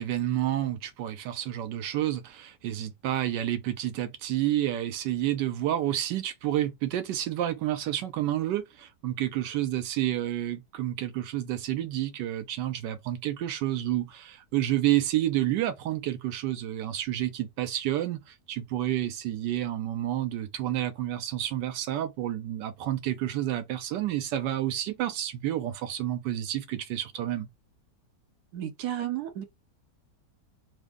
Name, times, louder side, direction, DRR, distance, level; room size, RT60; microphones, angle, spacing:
voice 1, 0.0-18.2 18.5-27.5, right 13 dB, 90° right, 1.3 m, -29 dB
voice 2, 28.5-29.4, right 12 dB, 70° right, 1.1 m, -32 dB
3.4 x 2.1 x 3.5 m
omnidirectional pair, 1.8 m